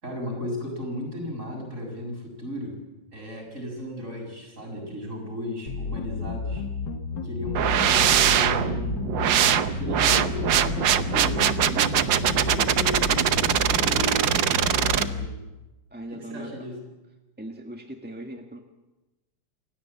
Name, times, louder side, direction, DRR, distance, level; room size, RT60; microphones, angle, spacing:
voice 1, 0.0-2.8 3.1-6.7 7.2-9.2 9.7-12.0 12.3-15.4 16.1-16.8, left 1 dB, 40° right, 1 dB, 7.3 m, -35 dB
sound 1, 5.7-15.3, left 5 dB, 75° left, 2.2 m, -32 dB
sound 2, 7.5-15.0, right 10 dB, 75° right, 1.6 m, -22 dB
voice 2, 15.9-16.7 17.4-18.6, right 1 dB, 5° right, 3 dB, 1.4 m, -39 dB
28.0 x 16.5 x 8.6 m, 1.1 s
omnidirectional pair, 2.0 m